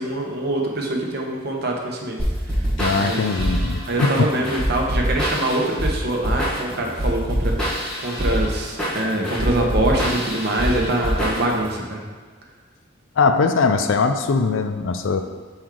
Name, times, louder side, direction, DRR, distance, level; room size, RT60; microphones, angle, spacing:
voice 1, 0.0-2.2 2.9-3.3 3.9-12.0, right 1 dB, 50° right, 0 dB, 0.8 m, -24 dB
sound 1, 2.2-11.7, equal, 5° left, 1.2 m, -25 dB
voice 2, 2.8-4.2 13.2-15.2, left 4 dB, 65° left, 8 dB, 0.4 m, -20 dB
6.1 x 4.5 x 3.7 m, 1.5 s
head